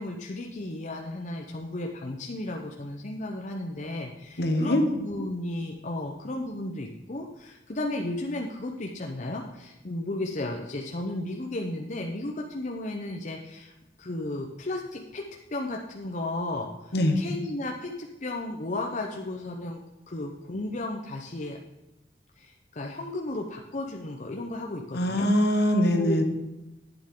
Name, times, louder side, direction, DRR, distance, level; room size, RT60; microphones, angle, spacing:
voice 1, 0.0-13.7 14.0-15.2 15.5-19.8 20.1-21.6 22.4-25.3 25.9-26.2, left 2 dB, 45° left, 1 dB, 0.8 m, -34 dB
voice 2, 4.4-4.8 16.9-17.2 24.9-26.2, left 1 dB, 65° left, 5 dB, 1.4 m, -23 dB
10.5 x 9.0 x 3.8 m, 1.0 s
head